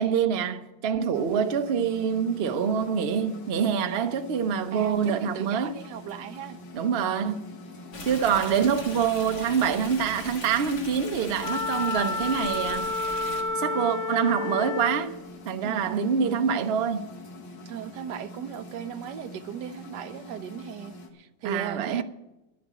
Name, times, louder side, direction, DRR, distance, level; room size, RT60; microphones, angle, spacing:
voice 1, 0.0-5.7 6.7-7.4 8.0-12.9 13.6-15.1 15.5-17.0 21.4-22.0, right 7 dB, 50° right, 0.7 m, -25 dB
sound 1, 1.1-21.1, left 2 dB, 80° left, 2.2 m, -45 dB
voice 2, 4.7-6.6 7.9-8.1 15.6-16.4 17.7-22.0, right 10 dB, 75° right, 1.2 m, -37 dB
Stream, 7.9-13.4, left 3 dB, 65° left, 2.3 m, -40 dB
Wind instrument woodwind instrument, 11.4-15.1, left 3 dB, 50° left, 0.8 m, -30 dB
11.5 x 7.8 x 9.2 m
omnidirectional pair, 1.9 m